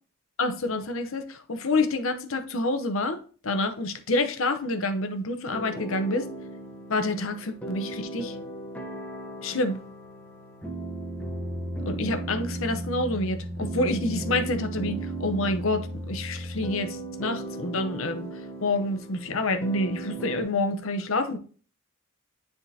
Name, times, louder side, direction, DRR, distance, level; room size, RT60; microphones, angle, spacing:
voice 1, 0.4-6.3 6.9-8.4 9.4-9.8 11.9-18.3 18.6-21.4, left 2 dB, 70° left, 0.8 m, -28 dB
sound 1, 5.5-20.4, right 1 dB, 5° left, 0.9 m, -36 dB
9.9 x 3.7 x 2.8 m
head